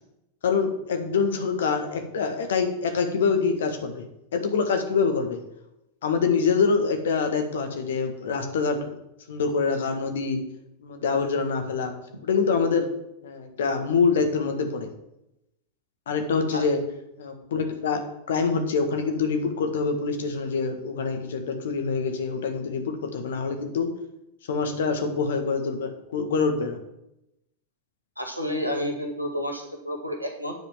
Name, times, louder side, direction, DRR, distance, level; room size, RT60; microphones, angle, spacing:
voice 1, 0.4-4.0 4.3-5.4 6.0-8.9 9.3-10.4 10.8-11.9 12.2-12.9 13.2-14.9 16.1-16.8 17.2-18.0 18.3-23.9 24.5-26.8, left 5 dB, 60° left, 6 dB, 1.6 m, -25 dB
voice 2, 28.2-30.5, equal, 90° right, 2 dB, 1.8 m, -30 dB
9.7 x 5.1 x 7.3 m, 0.85 s
figure-of-eight pair, 90°, 0 cm